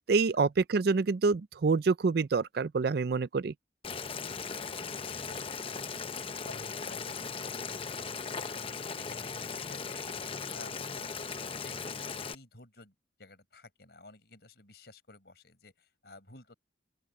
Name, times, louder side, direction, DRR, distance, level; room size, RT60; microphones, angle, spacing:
voice 1, 0.1-3.5, right 4 dB, 55° right, 0.4 m, -27 dB
Boiling, 3.8-12.3, left 5 dB, 30° left, 0.7 m, -38 dB
voice 2, 4.1-6.0 6.4-6.6 6.8-16.6, left 2 dB, 60° left, 5.3 m, -54 dB
open air
head